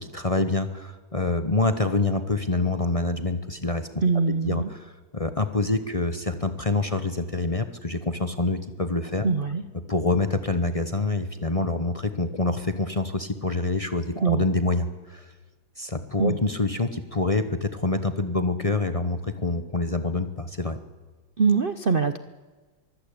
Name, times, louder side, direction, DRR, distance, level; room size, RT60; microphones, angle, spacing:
voice 1, 0.0-3.9 4.3-9.3 9.9-15.3 15.8-20.8, left 2 dB, 30° left, 9 dB, 0.7 m, -26 dB
voice 2, 4.0-4.7 9.2-9.6 14.2-14.4 16.2-16.4 21.4-22.2, right 4 dB, 85° right, 11 dB, 0.4 m, -23 dB
24.0 x 15.5 x 8.6 m, 1.3 s
omnidirectional pair, 2.2 m